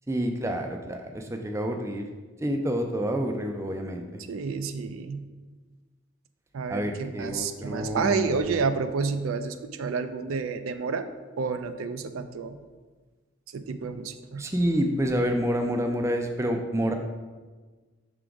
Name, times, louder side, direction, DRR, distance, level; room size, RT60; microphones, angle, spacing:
voice 1, 0.1-2.0 2.4-4.2 6.7-8.6 14.4-16.9, equal, 15° right, 4 dB, 0.4 m, -28 dB
voice 2, 4.3-5.3 6.5-11.1 11.4-12.6 13.5-14.4, right 5 dB, 90° right, 10 dB, 0.4 m, -30 dB
6.0 x 3.8 x 4.6 m, 1.3 s
head